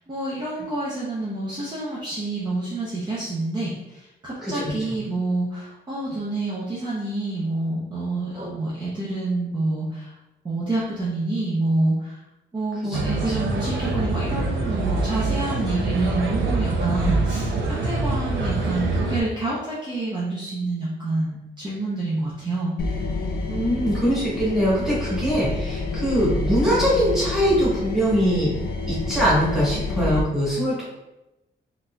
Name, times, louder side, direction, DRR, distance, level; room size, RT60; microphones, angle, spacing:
voice 1, 0.0-10.2 10.4-12.2 12.5-22.7, right 2 dB, 25° right, -7 dB, 0.6 m, -27 dB
sound 1, 12.9-19.2, right 3 dB, 80° right, 0.5 m, -25 dB
sound 2, 22.8-30.2, left 3 dB, 55° left, 0.4 m, -28 dB
voice 2, 23.5-28.5 28.9-30.8, equal, ahead, -8 dB, 1.2 m, -22 dB
3.9 x 2.5 x 2.2 m, 0.97 s
wide cardioid pair, 155°, 20 cm